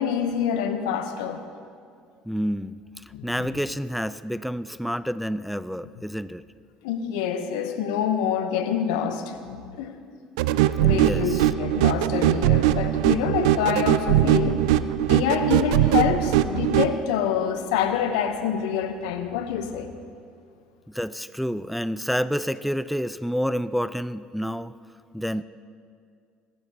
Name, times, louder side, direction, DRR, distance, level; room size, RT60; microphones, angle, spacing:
voice 1, 0.0-1.4 3.1-3.5 6.8-9.9 10.8-14.6 15.1-19.9, left 8 dB, 80° left, 1.0 m, -26 dB
voice 2, 2.3-6.4 10.9-11.5 20.9-24.7 25.1-25.4, equal, ahead, 0.4 m, -29 dB
sound 1, 10.4-16.9, right 13 dB, 80° right, 0.4 m, -21 dB
23.0 x 13.5 x 2.9 m
hypercardioid pair, 65°, 3 cm